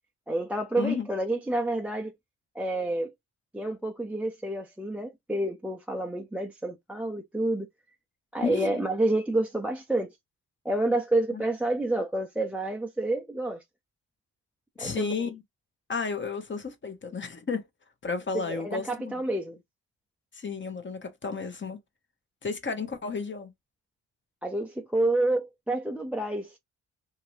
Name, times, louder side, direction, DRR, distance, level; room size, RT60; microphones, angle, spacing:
voice 1, 0.3-2.1 2.6-3.1 3.5-7.7 8.3-10.1 10.6-13.6 14.8-15.1 18.5-19.6 24.4-26.6, right 1 dB, 5° right, 0.5 m, -29 dB
voice 2, 8.4-8.8 11.3-11.4 14.8-15.4 15.9-17.6 18.0-19.2 20.3-21.8 22.4-23.5, left 5 dB, 30° left, 1.0 m, -32 dB
2.8 x 2.6 x 3.1 m
supercardioid pair, 60°, 36 cm